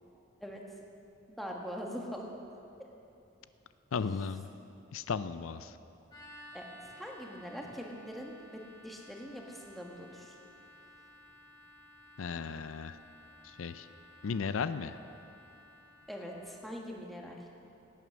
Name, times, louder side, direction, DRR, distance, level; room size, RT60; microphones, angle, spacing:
voice 1, 1.3-2.3 6.5-10.4 16.1-17.5, equal, ahead, -1 dB, 1.4 m, -43 dB
voice 2, 3.9-4.5 4.9-5.8 12.2-13.0 13.4-13.9 14.2-15.0, left 5 dB, 90° left, 12 dB, 0.5 m, -35 dB
sound 1, 6.1-16.7, left 1 dB, 20° left, 2.1 m, -56 dB
17.0 x 9.2 x 6.3 m, 2.8 s
head